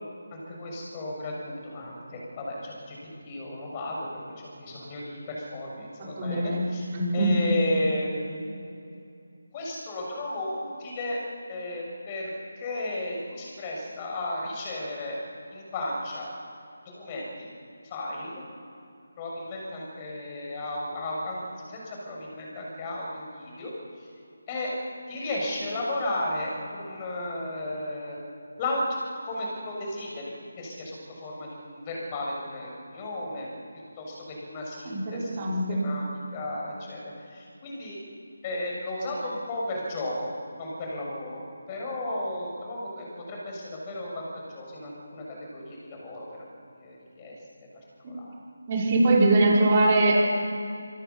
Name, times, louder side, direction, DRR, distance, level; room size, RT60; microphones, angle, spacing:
voice 1, 0.3-3.0 3.2-6.9 7.1-8.4 9.5-11.2 11.5-12.3 12.5-15.2 15.5-16.3 16.9-17.5 17.8-18.4 19.2-21.4 21.7-23.7 24.5-24.7 25.1-28.2 28.6-28.8 29.2-33.5 34.0-36.0 36.3-37.0 37.3-38.0 38.4-40.3 40.6-41.4 41.7-44.3 44.5-45.2 45.5-46.2 46.7-47.3 48.0-48.3, left 1 dB, 20° left, -2 dB, 6.6 m, -34 dB
voice 2, 6.2-6.6 6.9-7.3 34.8-35.8 48.0-48.2 48.7-50.1, right 2 dB, 30° right, -4 dB, 5.3 m, -22 dB
25.0 x 18.0 x 7.2 m, 2.6 s
figure-of-eight pair, 165°, 0 cm